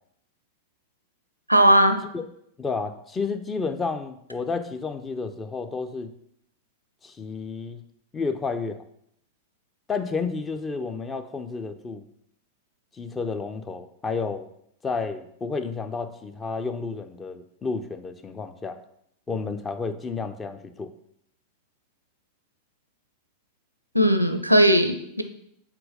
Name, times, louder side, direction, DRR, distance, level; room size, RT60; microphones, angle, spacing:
voice 1, 1.5-2.0 23.9-25.2, equal, 90° right, 9 dB, 0.5 m, -18 dB
voice 2, 2.6-6.1 7.0-7.8 8.1-8.8 9.9-12.0 13.0-14.5 14.8-18.8 19.3-20.9, left 4 dB, 20° left, 8 dB, 0.5 m, -31 dB
4.5 x 4.0 x 5.2 m, 0.72 s
figure-of-eight pair, 90°, 0 cm